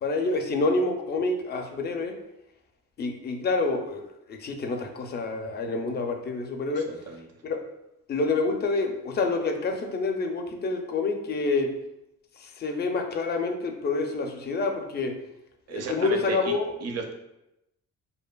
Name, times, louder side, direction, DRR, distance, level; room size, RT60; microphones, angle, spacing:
voice 1, 0.0-2.1 3.0-4.0 4.3-6.8 7.4-7.6 8.1-11.7 12.4-15.1 15.7-16.7, left 3 dB, 35° left, 4 dB, 0.4 m, -27 dB
voice 2, 6.8-7.2 15.7-16.6 16.8-17.1, right 5 dB, 55° right, 4 dB, 0.5 m, -34 dB
2.7 x 2.4 x 2.2 m, 0.87 s
cardioid pair, 90°, 30 cm